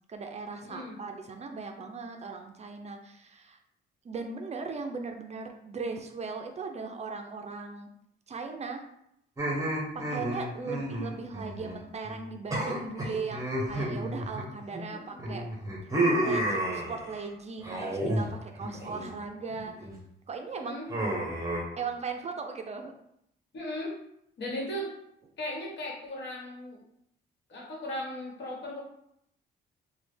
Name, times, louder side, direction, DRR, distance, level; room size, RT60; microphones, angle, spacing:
voice 1, 0.1-3.6 4.0-7.9 8.3-8.8 9.9-15.4 16.0-19.9 20.3-20.8 21.8-22.9, right 4 dB, 35° right, 4 dB, 0.4 m, -38 dB
voice 2, 0.6-1.0 10.6-11.1 14.9-15.3 20.5-20.9 23.5-24.0 24.4-24.9 25.4-26.8 27.5-28.8, left 1 dB, 65° left, -2 dB, 1.2 m, -37 dB
sound 1, 9.4-11.8 12.0-12.2 12.5-14.8 15.2-17.2 17.6-18.3 18.6-19.1 19.5-19.9 20.9-21.6, right 1 dB, 15° right, 0.9 m, -31 dB
3.1 x 2.2 x 3.2 m, 0.76 s
cardioid pair, 90°, 20 cm